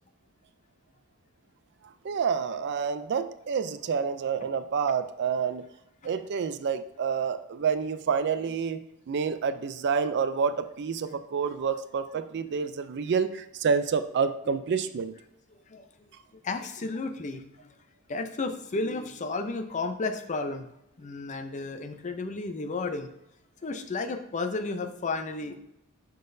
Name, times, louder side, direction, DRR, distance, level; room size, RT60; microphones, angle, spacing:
voice 1, 1.8-5.6 6.0-15.1, right 6 dB, 50° right, 11 dB, 0.4 m, -28 dB
voice 2, 15.7-16.1 16.4-17.7 18.1-20.7 21.0-23.1 23.6-25.6, left 3 dB, 35° left, 8 dB, 0.5 m, -33 dB
10.5 x 3.9 x 2.6 m, 0.81 s
head